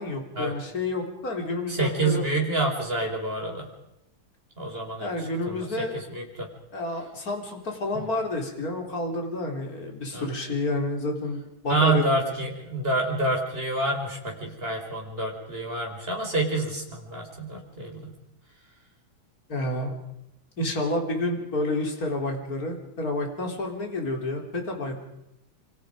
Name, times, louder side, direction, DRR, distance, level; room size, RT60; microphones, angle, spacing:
voice 1, 0.0-2.2 5.0-6.0 6.7-12.3 19.5-19.9 20.6-25.0, left 2 dB, 45° left, 2 dB, 4.4 m, -29 dB
voice 2, 1.7-3.7 4.6-6.5 7.9-8.0 10.1-10.3 11.7-18.1 20.6-20.7, right 2 dB, 25° right, 0 dB, 5.7 m, -28 dB
28.0 x 26.5 x 5.2 m, 0.87 s
omnidirectional pair, 2.2 m